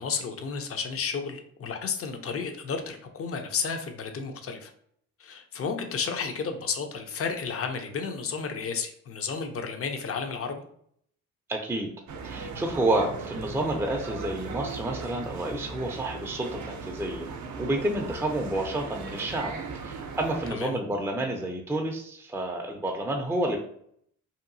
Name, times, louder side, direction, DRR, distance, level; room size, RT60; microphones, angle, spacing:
voice 1, 0.0-4.7 5.2-10.6 20.5-20.8, left 5 dB, 45° left, 6 dB, 0.6 m, -32 dB
voice 2, 11.5-11.9 12.2-19.5 19.8-23.6, right 1 dB, 10° right, 1 dB, 0.4 m, -29 dB
sound 1, 12.1-20.5, right 4 dB, 60° right, 0.5 m, -38 dB
2.8 x 2.3 x 2.6 m, 0.67 s
cardioid pair, 65°, 33 cm